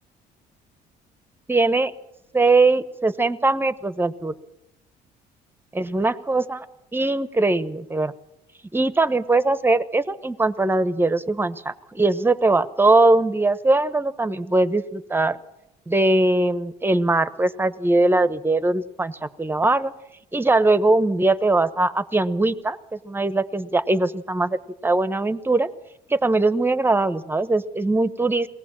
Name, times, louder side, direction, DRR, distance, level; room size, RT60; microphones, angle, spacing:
voice 1, 1.5-1.9 2.3-4.3 5.7-6.6 6.9-8.1 8.7-15.4 15.9-19.9 20.3-25.7 26.1-28.5, right 2 dB, 15° right, 14 dB, 1.0 m, -21 dB
23.0 x 18.5 x 7.5 m, 0.87 s
cardioid pair, 110°, 17 cm